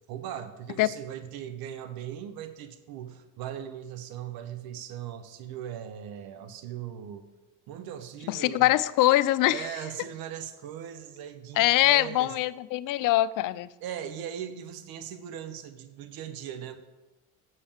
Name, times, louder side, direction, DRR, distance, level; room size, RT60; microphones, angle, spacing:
voice 1, 0.1-7.3 7.7-8.7 9.5-12.3 13.8-16.8, right 9 dB, 75° right, 10 dB, 0.9 m, -39 dB
voice 2, 8.3-9.7 11.6-13.7, left 15 dB, 60° left, 17 dB, 0.5 m, -23 dB
6.5 x 5.5 x 7.0 m, 1.1 s
supercardioid pair, 85°, 36 cm